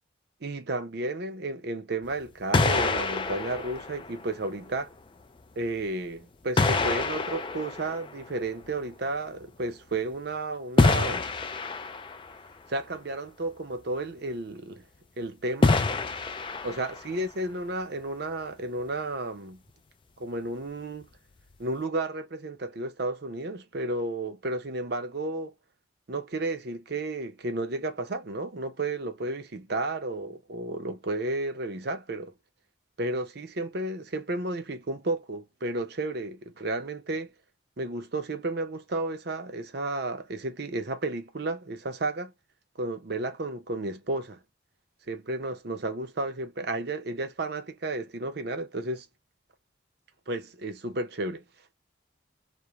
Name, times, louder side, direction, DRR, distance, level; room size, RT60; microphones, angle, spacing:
voice 1, 0.4-4.9 5.6-11.3 12.7-14.8 15.2-15.8 16.6-19.6 20.2-21.1 21.6-25.5 26.1-32.3 33.0-37.3 37.8-42.3 42.8-44.4 45.1-49.1 50.3-51.4, right 2 dB, 55° right, 0.6 m, -32 dB
sound 1, 2.0-2.3 2.5-4.7 5.7-5.8 6.6-8.7 10.8-12.4 15.6-17.2, left 3 dB, 25° left, 0.3 m, -26 dB
2.4 x 2.1 x 2.9 m
head